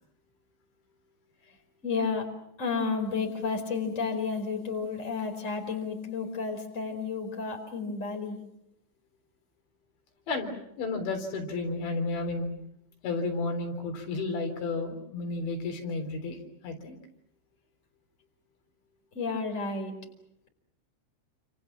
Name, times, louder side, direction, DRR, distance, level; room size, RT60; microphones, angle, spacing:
voice 1, 1.8-2.3 2.6-8.4 19.1-20.0, left 4 dB, 15° left, 4 dB, 4.5 m, -31 dB
voice 2, 10.3-12.5 13.0-16.4 16.6-17.0, left 3 dB, 70° left, 4 dB, 6.0 m, -32 dB
29.5 x 28.5 x 6.1 m, 0.78 s
omnidirectional pair, 5.4 m